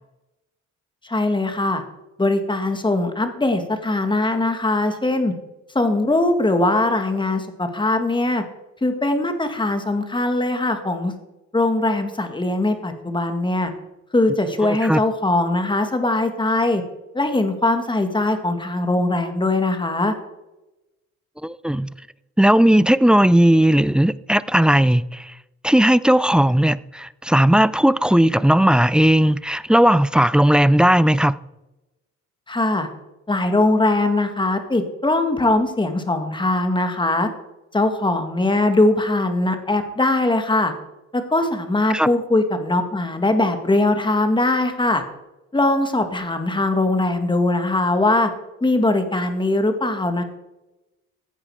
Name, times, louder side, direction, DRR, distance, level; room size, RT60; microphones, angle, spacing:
voice 1, 1.0-1.8 2.2-5.3 5.7-8.4 8.8-11.1 11.5-13.7 14.1-16.8 17.1-20.1 32.5-32.9 33.3-37.3 37.7-40.7 41.1-45.0 45.5-48.3 48.6-50.2, left 2 dB, 15° left, 2.0 m, -21 dB
voice 2, 14.6-15.0 21.4-21.9 22.4-25.3 25.6-31.4 41.9-42.1, right 1 dB, 5° right, 0.4 m, -16 dB
15.5 x 8.7 x 4.9 m
cardioid pair, 90°, 30 cm